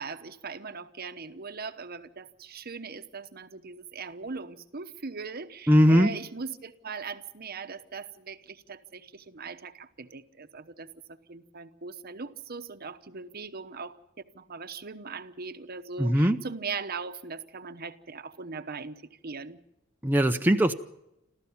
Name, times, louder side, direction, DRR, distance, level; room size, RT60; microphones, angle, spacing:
voice 1, 0.0-10.9 11.3-14.0 14.3-19.0 19.2-19.6, right 4 dB, 50° right, 10 dB, 1.0 m, -39 dB
voice 2, 5.7-6.1 16.0-16.4 20.0-20.7, equal, 10° right, 4 dB, 0.7 m, -20 dB
27.5 x 14.0 x 7.3 m, 0.85 s
head